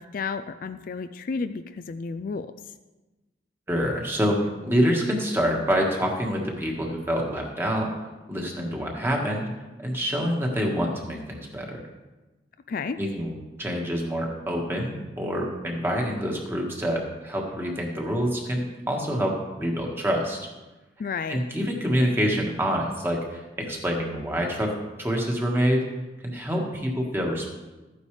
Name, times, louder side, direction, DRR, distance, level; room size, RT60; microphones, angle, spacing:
voice 1, 0.0-2.5 12.7-13.0 21.0-21.4, left 5 dB, 50° left, 10 dB, 0.3 m, -32 dB
voice 2, 3.7-9.5 9.8-11.8 13.0-20.4 21.3-25.8 26.2-27.5, equal, 15° right, 0 dB, 1.6 m, -26 dB
13.5 x 9.4 x 3.3 m, 1.1 s
head